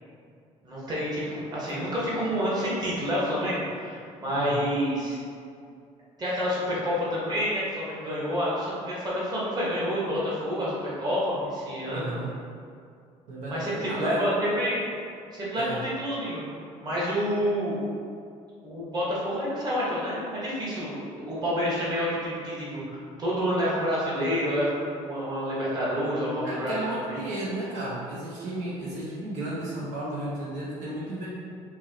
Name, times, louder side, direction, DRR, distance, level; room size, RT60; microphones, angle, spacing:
voice 1, 0.6-5.2 6.2-12.2 13.5-14.8 15.3-16.4 16.8-17.8 18.6-21.0 21.2-27.2, equal, 30° right, -7 dB, 1.3 m, -28 dB
voice 2, 4.3-4.7 11.8-12.3 13.3-14.3 15.6-15.8 26.4-31.3, right 1 dB, 80° right, -8 dB, 1.0 m, -33 dB
4.5 x 2.8 x 2.8 m, 2.3 s
cardioid pair, 110°, 13 cm